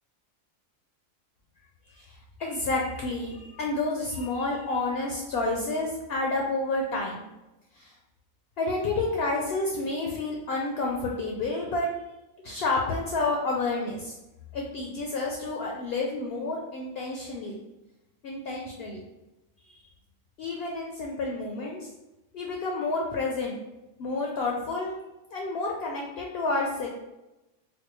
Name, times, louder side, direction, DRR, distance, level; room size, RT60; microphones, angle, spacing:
voice 1, 1.9-7.2 7.7-7.9 8.6-11.9 12.4-14.2 14.5-17.6 18.2-19.0 20.4-21.9 22.3-23.6 24.0-24.9 25.3-26.9, left 2 dB, 65° left, -1 dB, 0.6 m, -30 dB
4.4 x 2.0 x 3.0 m, 0.99 s
omnidirectional pair, 1.3 m